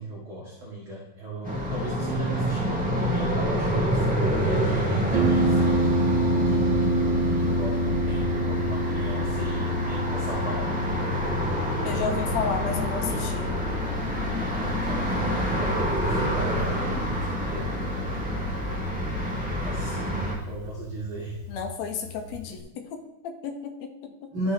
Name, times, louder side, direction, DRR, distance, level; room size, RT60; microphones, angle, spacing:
voice 1, 0.0-4.1 4.5-5.8 6.4-11.2 11.7-12.2 13.1-13.2 14.6-17.9 19.2-21.4 24.3-24.5, right 1 dB, 45° right, -5 dB, 2.1 m, -37 dB
sound 1, 1.4-20.3, equal, 5° right, 0.9 m, -28 dB
Harp, 5.1-22.6, equal, 75° right, 2.3 m, -29 dB
voice 2, 11.8-13.6 21.5-24.3, left 5 dB, 75° left, 5 dB, 1.8 m, -33 dB
13.0 x 5.4 x 3.6 m, 0.98 s
omnidirectional pair, 3.5 m